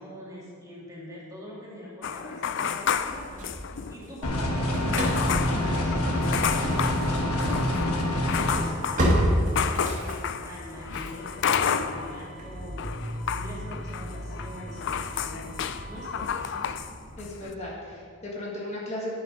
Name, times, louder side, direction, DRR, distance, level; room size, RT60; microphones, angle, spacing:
voice 1, 0.0-4.7 5.2-9.3 9.6-15.5 15.9-16.5, equal, 15° right, -5 dB, 2.0 m, -43 dB
sound 1, 2.0-4.1 4.4-4.5 4.9-12.3 12.6-16.9 17.2-17.5, left 7 dB, 55° left, 0.4 m, -31 dB
Engine starting / Slam, 2.7-4.1 4.4-17.4, equal, 35° right, 2.1 m, -33 dB
sound 2, 4.2-8.6, left 1 dB, 75° left, 1.2 m, -26 dB
voice 2, 16.2-16.7 17.2-19.1, left 1 dB, 30° left, -4 dB, 1.7 m, -36 dB
10.5 x 6.0 x 5.4 m, 2.1 s
head